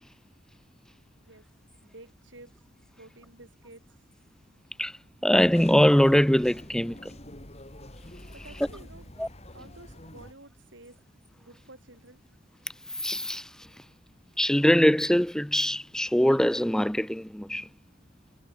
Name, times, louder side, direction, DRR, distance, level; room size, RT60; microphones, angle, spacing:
voice 1, 1.8-2.6 2.9-3.9 8.3-9.1 9.5-11.0 11.4-12.2, right 2 dB, 80° right, 6.6 m, -51 dB
voice 2, 5.2-7.1 8.4-8.7 9.2-9.3 13.0-13.5 14.4-17.7, equal, 5° left, 0.5 m, -22 dB
sound 1, 5.3-10.3, left 1 dB, 35° left, 7.4 m, -47 dB
head